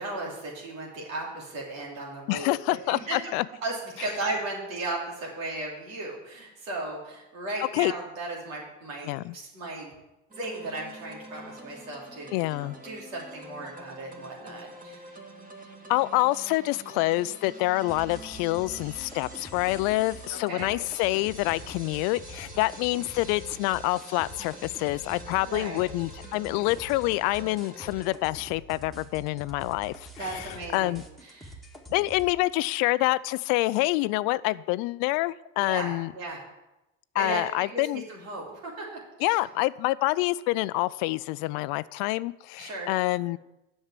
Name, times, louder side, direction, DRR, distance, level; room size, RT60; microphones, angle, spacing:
voice 1, 0.0-2.5 2.9-9.9 10.4-15.0 20.3-20.7 25.4-25.8 30.2-31.5 35.6-36.4 37.1-39.4 42.6-42.9 43.2-43.3, right 2 dB, 85° right, -2 dB, 3.1 m, -36 dB
voice 2, 2.3-3.4 7.7-7.9 9.1-9.3 12.3-12.8 15.9-31.0 31.9-36.1 37.1-38.0 39.2-43.4, left 19 dB, 60° left, 18 dB, 0.5 m, -27 dB
sound 1, 10.3-28.0, right 1 dB, 20° right, 2.0 m, -46 dB
sound 2, 17.9-32.3, right 1 dB, ahead, 1.6 m, -46 dB
7.9 x 6.4 x 7.4 m, 0.94 s
hypercardioid pair, 80°, 39 cm